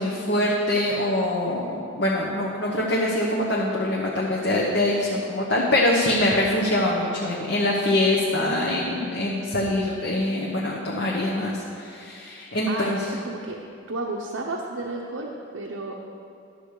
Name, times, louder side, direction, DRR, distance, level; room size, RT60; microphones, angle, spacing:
voice 1, 0.0-13.1, left 1 dB, 55° left, -3 dB, 1.0 m, -24 dB
voice 2, 12.4-13.6 13.9-15.9, right 2 dB, 75° right, -1 dB, 0.8 m, -32 dB
11.5 x 7.0 x 4.8 m, 2.5 s
head